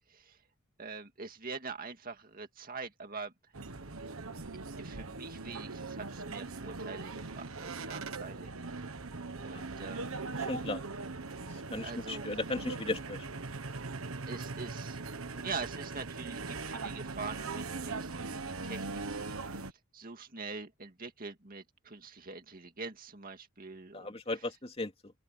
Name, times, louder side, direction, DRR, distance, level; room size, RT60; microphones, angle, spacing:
voice 1, 0.8-3.3 4.8-8.5 8.8-8.9 9.4-10.2 11.8-12.3 13.9-14.0 14.3-19.6 19.9-24.2, right 4 dB, 45° right, 2.1 m, -44 dB
sound 1, 3.5-19.7, right 3 dB, 85° right, 1.4 m, -40 dB
voice 2, 10.5-10.8 11.7-13.2 23.9-25.1, left 2 dB, 30° left, 3.0 m, -36 dB
open air
head